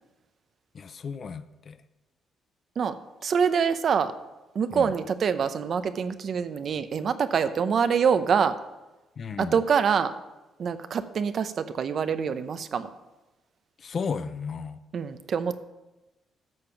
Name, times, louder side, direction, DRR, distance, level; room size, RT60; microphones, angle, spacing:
voice 1, 0.7-1.8 4.7-4.9 9.2-9.6 13.8-14.8, left 5 dB, 50° left, 12 dB, 0.6 m, -34 dB
voice 2, 2.8-4.1 4.5-8.6 9.4-10.2 10.6-12.9 14.9-15.6, right 6 dB, 55° right, 11 dB, 0.7 m, -25 dB
10.5 x 6.7 x 5.8 m, 1.0 s
cardioid pair, 90°, 0 cm